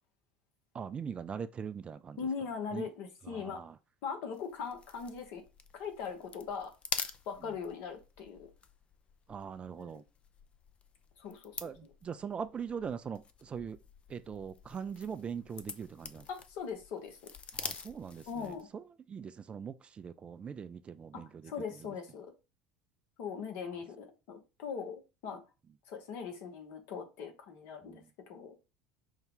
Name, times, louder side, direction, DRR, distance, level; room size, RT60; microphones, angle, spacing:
voice 1, 0.7-2.2 2.7-2.8 3.2-3.8 7.4-7.5 9.3-10.0 11.6-13.8 14.1-16.3 17.5-21.6 27.8-28.1, right 7 dB, 30° right, 0.4 m, -41 dB
voice 2, 2.2-3.6 4.0-5.4 5.7-6.7 7.3-8.5 9.8-10.0 11.2-11.7 16.3-17.2 18.3-18.7 21.1-21.2 21.5-22.3 23.2-25.4 25.9-28.5, left 6 dB, 60° left, 1.1 m, -40 dB
sound 1, 4.3-18.7, left 5 dB, 30° left, 0.5 m, -46 dB
5.4 x 2.3 x 3.8 m
hypercardioid pair, 70°, 4 cm